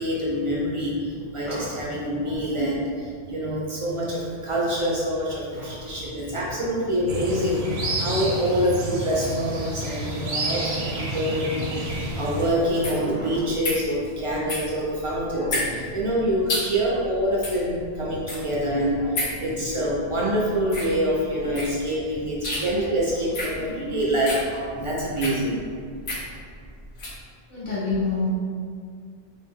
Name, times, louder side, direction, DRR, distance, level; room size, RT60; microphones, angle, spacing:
voice 1, 0.0-11.8 12.1-25.6, equal, 55° right, -5 dB, 0.3 m, -26 dB
sound 1, 7.1-12.5, right 1 dB, 80° right, 0.8 m, -29 dB
sound 2, 11.8-27.2, left 1 dB, 85° left, 1.0 m, -33 dB
voice 2, 27.5-28.3, left 4 dB, 65° left, -9 dB, 1.1 m, -25 dB
2.8 x 2.0 x 3.5 m, 2.1 s
omnidirectional pair, 1.0 m